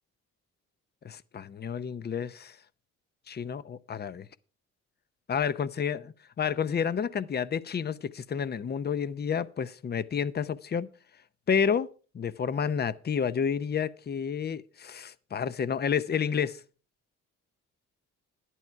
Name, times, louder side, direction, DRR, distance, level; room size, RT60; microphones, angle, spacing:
voice 1, 1.0-2.5 3.3-4.3 5.3-6.0 6.4-10.9 11.5-11.9 12.1-16.6, left 7 dB, 35° left, 0.7 m, -30 dB
11.5 x 10.5 x 4.6 m
cardioid pair, 90°, 30 cm